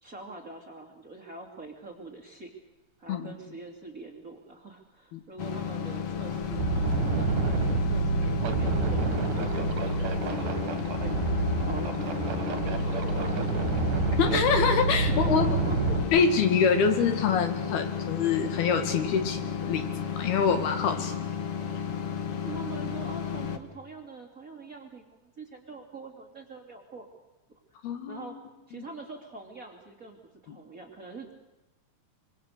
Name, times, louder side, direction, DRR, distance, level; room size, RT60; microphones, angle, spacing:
voice 1, 0.0-2.6 3.0-6.8 7.1-11.1 11.6-14.1 14.3-14.6 15.1-16.2 22.4-27.1 28.1-28.4 28.7-31.3, right 3 dB, 25° right, 3 dB, 2.8 m, -44 dB
sound 1, 5.4-23.6, left 7 dB, 50° left, 1.9 m, -33 dB
sound 2, 5.6-5.7 6.2-16.0, right 4 dB, 60° right, 3.4 m, -28 dB
voice 2, 14.2-15.6 16.1-19.9 20.1-21.1 27.8-28.4 30.5-30.6, left 6 dB, 75° left, 8 dB, 4.0 m, -25 dB
25.5 x 24.5 x 6.7 m, 0.99 s
omnidirectional pair, 4.6 m